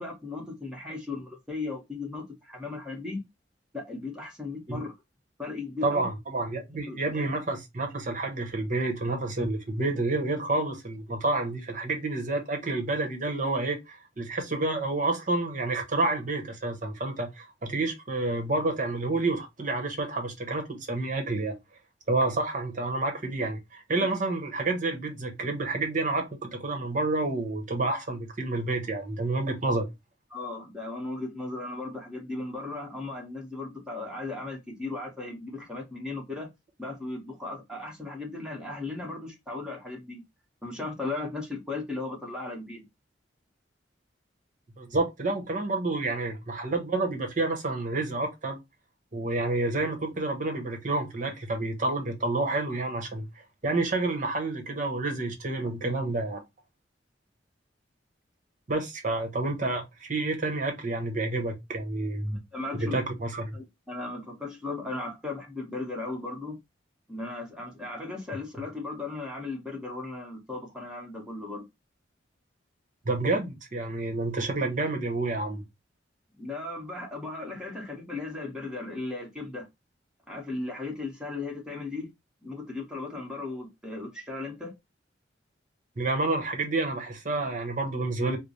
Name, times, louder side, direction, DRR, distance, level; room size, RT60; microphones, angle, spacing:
voice 1, 0.0-3.2 3.7-4.9 5.4-6.1 6.9-7.2 30.3-36.5 36.8-40.2 40.6-42.9 62.5-63.0 63.5-66.6 67.1-71.7 76.3-79.7 80.3-82.1 82.4-84.8, left 3 dB, 5° right, 1.2 m, -36 dB
voice 2, 5.8-21.6 22.1-29.9 44.8-48.6 49.1-53.3 53.6-56.4 58.7-62.4 62.7-63.6 73.0-75.6 86.0-88.4, right 2 dB, 45° right, 1.0 m, -29 dB
3.3 x 2.1 x 4.0 m
head